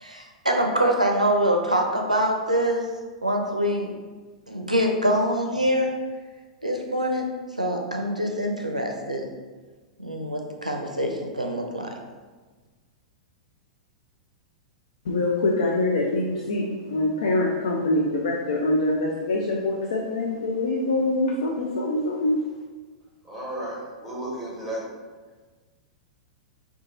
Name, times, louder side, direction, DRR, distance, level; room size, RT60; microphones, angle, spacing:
voice 1, 0.0-2.8 3.2-3.9 4.5-5.9 6.6-7.3 7.6-9.3 10.0-11.9, equal, 90° right, 2 dB, 0.4 m, -24 dB
voice 2, 15.1-22.4, left 2 dB, 60° left, -2 dB, 0.4 m, -24 dB
voice 3, 23.2-24.8, right 1 dB, ahead, -7 dB, 1.2 m, -33 dB
2.9 x 2.3 x 3.7 m, 1.4 s
figure-of-eight pair, 100°, 4 cm